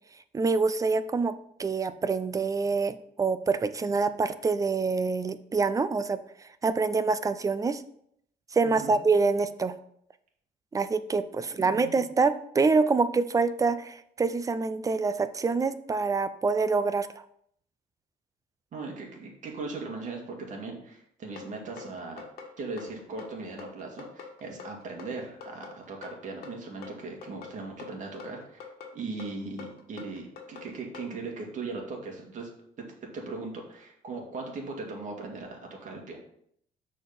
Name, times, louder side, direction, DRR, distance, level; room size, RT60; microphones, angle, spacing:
voice 1, 0.3-1.3 1.6-6.2 6.6-7.8 8.5-9.7 10.7-17.1, right 4 dB, 20° right, 13 dB, 0.5 m, -26 dB
voice 2, 11.5-12.0 18.7-22.3 22.6-32.5 33.1-36.2, right 3 dB, 50° right, 0 dB, 2.1 m, -39 dB
sound 1, 21.4-31.1, left 5 dB, 65° left, 1.5 m, -44 dB
6.5 x 4.3 x 5.3 m, 0.69 s
cardioid pair, 110°, 17 cm